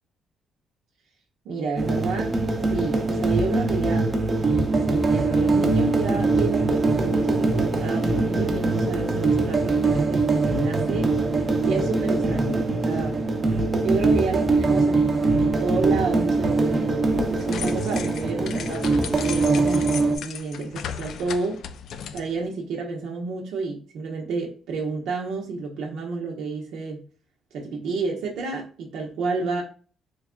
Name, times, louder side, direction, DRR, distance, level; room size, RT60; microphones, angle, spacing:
voice 1, 1.4-2.3 2.7-4.1 4.7-11.2 11.6-13.2 13.8-21.6 22.1-27.0 27.5-29.6, right 3 dB, 85° right, -1 dB, 0.8 m, -30 dB
sound 1, 1.8-20.2, right 3 dB, 35° right, 0.8 m, -22 dB
sound 2, 17.4-22.5, left 8 dB, 70° left, 0.3 m, -36 dB
3.3 x 2.2 x 3.7 m, 0.38 s
cardioid pair, 90°, 0 cm